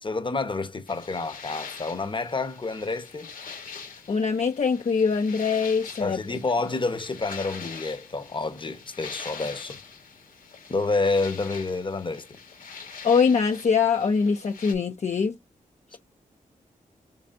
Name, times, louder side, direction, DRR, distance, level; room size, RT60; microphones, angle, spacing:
voice 1, 0.0-3.3 6.0-9.8 10.7-12.4, left 3 dB, 35° left, 0.9 m, -29 dB
sound 1, 0.9-14.7, left 5 dB, 70° left, 1.4 m, -43 dB
voice 2, 4.1-6.2 13.0-15.3, left 5 dB, 50° left, 0.6 m, -23 dB
5.4 x 3.2 x 2.5 m
cardioid pair, 65°, 15 cm